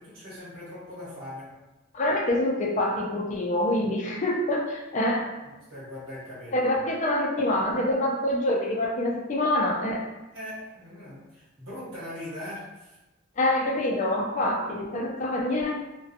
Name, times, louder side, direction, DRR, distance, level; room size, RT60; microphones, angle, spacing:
voice 1, 0.0-1.5 5.4-6.7 10.3-13.0, left 1 dB, 80° right, -8 dB, 1.0 m, -40 dB
voice 2, 1.9-5.3 6.5-10.1 13.4-15.8, left 1 dB, 35° left, 1 dB, 0.4 m, -26 dB
2.5 x 2.2 x 2.6 m, 1.1 s
head